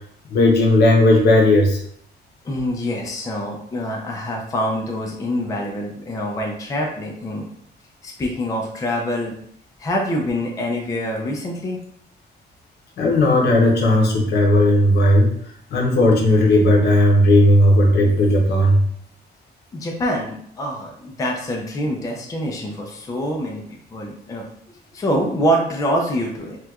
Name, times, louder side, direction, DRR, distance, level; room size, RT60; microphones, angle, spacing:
voice 1, 0.3-1.8 13.0-15.3 15.7-18.8, left 1 dB, 70° left, 0 dB, 0.8 m, -15 dB
voice 2, 2.4-7.5 8.0-9.3 9.8-11.8 19.7-23.6 23.9-24.4 24.9-26.6, equal, 20° left, 0 dB, 0.4 m, -25 dB
4.3 x 2.3 x 2.3 m, 0.65 s
cardioid pair, 165°, 18 cm